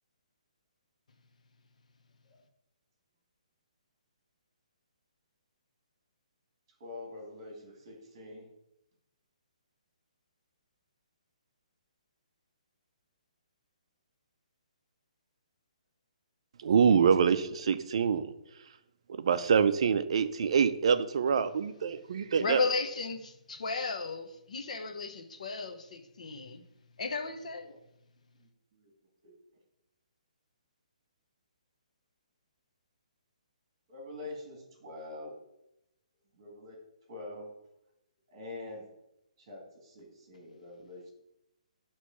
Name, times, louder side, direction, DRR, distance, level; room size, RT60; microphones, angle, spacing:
voice 1, 6.8-8.5 27.6-27.8 28.4-28.9 29.2-29.3 33.9-35.4 36.3-36.8 37.1-37.6 38.3-38.9 39.4-41.1, left 2 dB, 30° right, 1.8 m, -45 dB
voice 2, 16.6-18.3 19.2-22.6, right 6 dB, 45° right, 0.4 m, -25 dB
voice 3, 22.4-26.6 27.0-27.7, left 4 dB, 65° left, 0.8 m, -34 dB
6.3 x 3.0 x 5.7 m
hypercardioid pair, 175°, 4 cm